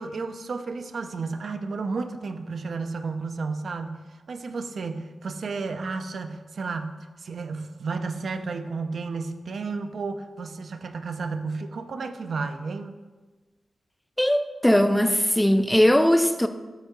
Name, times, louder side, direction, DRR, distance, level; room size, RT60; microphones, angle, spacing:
voice 1, 0.0-4.0 4.3-13.0, right 4 dB, 60° right, 0.4 m, -32 dB
voice 2, 14.2-16.5, equal, 5° left, 0.3 m, -20 dB
7.9 x 2.7 x 5.8 m
wide cardioid pair, 95°, 0 cm